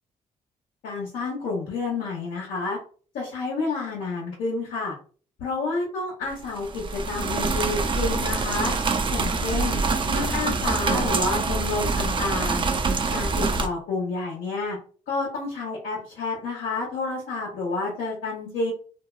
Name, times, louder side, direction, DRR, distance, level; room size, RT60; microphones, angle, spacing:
voice 1, 0.8-2.8 3.1-4.9 5.4-8.7 9.1-9.8 10.1-12.7 13.1-14.8 15.1-18.7, left 3 dB, 80° left, -6 dB, 1.0 m, -29 dB
sound 1, 6.4-13.7, right 4 dB, 35° right, 0.4 m, -25 dB
2.7 x 2.2 x 2.4 m, 0.40 s
supercardioid pair, 55°, 15 cm